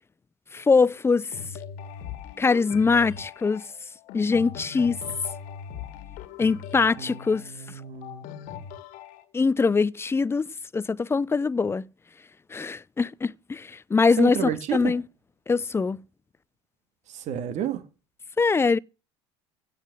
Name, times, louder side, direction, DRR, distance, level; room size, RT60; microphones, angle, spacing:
voice 1, 0.5-1.3 2.4-3.7 4.1-5.0 6.4-7.4 9.3-10.5 10.7-11.8 12.5-15.0 15.5-16.0 18.4-18.8, left 4 dB, 15° left, 0.5 m, -23 dB
sound 1, 1.3-9.2, left 7 dB, 55° left, 1.8 m, -40 dB
voice 2, 7.0-8.3 14.2-14.9 17.1-17.8, right 9 dB, 50° right, 2.1 m, -31 dB
16.5 x 5.8 x 7.6 m
figure-of-eight pair, 65°, 15 cm